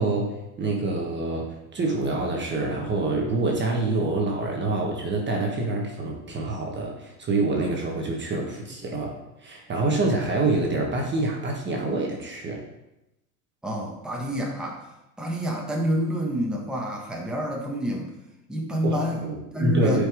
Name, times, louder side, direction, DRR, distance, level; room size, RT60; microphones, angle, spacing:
voice 1, 0.0-9.2 9.4-12.6 18.8-20.1, right 2 dB, 25° right, 0 dB, 1.5 m, -26 dB
voice 2, 13.6-14.8 15.2-18.1 18.5-19.2 19.5-20.1, equal, ahead, -2 dB, 1.5 m, -28 dB
9.0 x 5.1 x 3.6 m, 0.91 s
hypercardioid pair, 100°, 46 cm